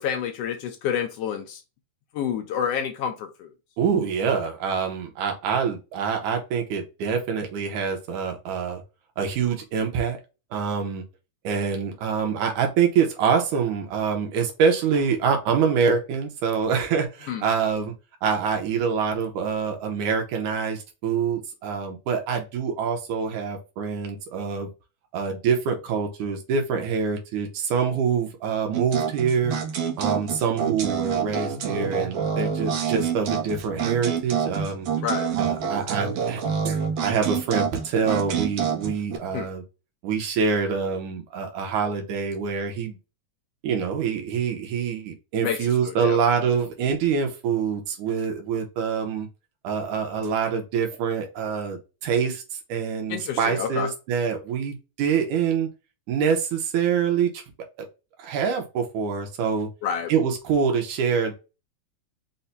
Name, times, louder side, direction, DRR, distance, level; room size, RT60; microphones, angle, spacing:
voice 1, 0.0-1.6 2.1-3.5 17.3-17.5 35.0-35.3 39.3-39.5 45.4-45.6 45.8-46.2 53.1-53.9 59.8-60.1, left 8 dB, 75° left, 1.5 m, -28 dB
voice 2, 3.8-8.8 9.2-10.2 10.5-11.0 11.4-17.9 18.2-24.7 25.1-29.6 30.0-34.9 35.4-39.6 40.0-43.0 43.6-49.3 49.6-52.4 52.7-55.7 56.1-57.4 58.2-59.7 60.1-61.3, right 6 dB, 90° right, 2.4 m, -25 dB
sound 1, 28.7-39.2, right 7 dB, 65° right, 1.6 m, -27 dB
5.5 x 2.2 x 4.0 m
omnidirectional pair, 3.3 m